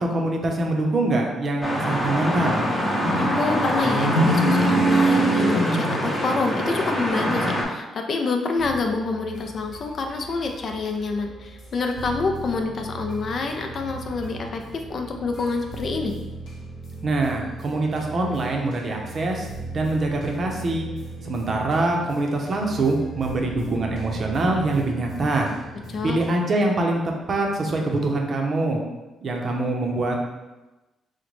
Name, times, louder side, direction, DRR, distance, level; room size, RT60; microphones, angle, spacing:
voice 1, 0.0-2.6 17.0-19.5 19.7-20.9 21.2-25.5 26.0-27.0 27.3-28.8 29.2-30.2, right 2 dB, 45° right, 1 dB, 0.6 m, -24 dB
sound 1, 1.6-7.6, right 1 dB, 10° left, 0.7 m, -22 dB
voice 2, 3.2-16.1 25.9-26.2, left 4 dB, 50° left, 4 dB, 0.4 m, -27 dB
sound 2, 8.6-26.3, right 2 dB, 85° left, 1.0 m, -38 dB
3.7 x 2.1 x 3.1 m, 1.1 s
cardioid pair, 90°, 0 cm